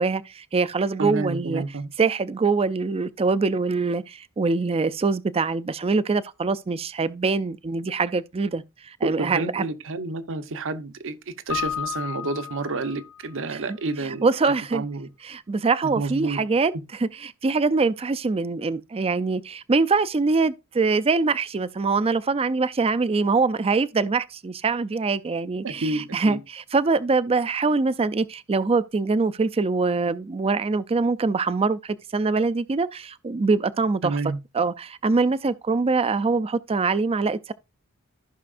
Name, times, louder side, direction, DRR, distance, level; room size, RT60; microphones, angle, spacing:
voice 1, 0.0-1.6 2.0-9.6 14.2-14.8 15.2-16.7 17.0-34.1 34.5-37.5, right 4 dB, 25° right, 0.4 m, -24 dB
voice 2, 1.0-1.9 9.0-15.1 15.8-16.4 25.6-26.4 34.0-34.4, right 3 dB, 60° right, 0.9 m, -30 dB
Keyboard (musical), 11.5-13.3, left 9 dB, 90° left, 0.5 m, -32 dB
15.0 x 5.7 x 2.5 m
head